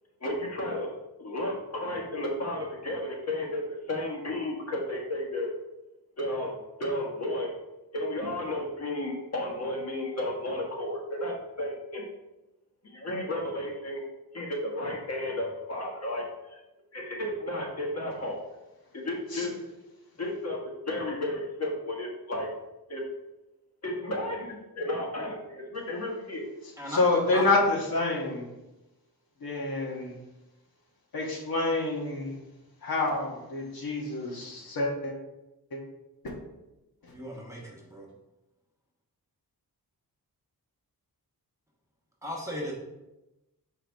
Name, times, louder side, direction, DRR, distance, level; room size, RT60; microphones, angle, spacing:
voice 1, 0.2-0.9 1.2-5.5 6.2-7.5 7.9-12.0 12.8-14.0 14.3-16.6 16.9-18.4 18.9-19.5 20.2-22.5 22.9-23.0 23.8-26.5, left 1 dB, 40° left, -1 dB, 1.5 m, -33 dB
voice 2, 26.9-28.4 29.4-30.1 31.1-32.4 32.8-35.1 35.7-35.8 37.0-37.1, left 2 dB, 65° left, -2 dB, 1.4 m, -27 dB
voice 3, 37.1-38.1 42.2-42.7, left 1 dB, 10° right, -3 dB, 1.1 m, -36 dB
5.8 x 4.8 x 3.5 m, 0.97 s
wide cardioid pair, 125°, 38 cm